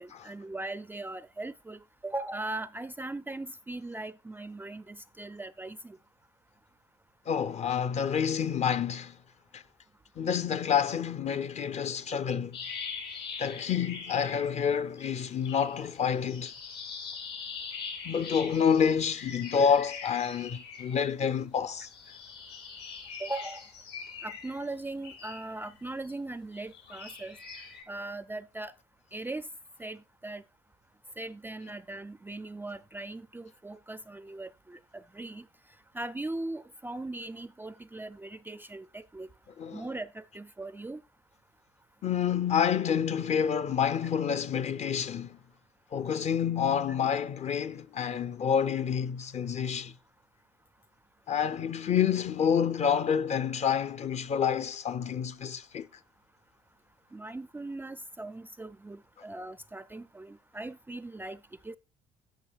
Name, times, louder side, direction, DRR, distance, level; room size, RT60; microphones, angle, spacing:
voice 1, 0.0-6.0 23.2-23.7 24.2-27.4 27.9-28.7 29.1-29.5 29.8-30.4 31.2-35.5 35.9-39.3 39.7-41.0 57.1-61.8, right 2 dB, 10° right, 0.3 m, -39 dB
voice 2, 7.3-9.2 9.5-9.6 10.2-12.6 13.4-16.5 18.0-21.9 39.6-39.8 42.0-45.4 45.9-49.9 51.3-55.9, left 7 dB, 40° left, 0.5 m, -28 dB
sound 1, 12.5-14.7 15.0-21.3 21.7-26.1 26.6-27.8, left 5 dB, 80° left, 5.3 m, -43 dB
17.0 x 5.6 x 2.3 m
cardioid pair, 110°, 17 cm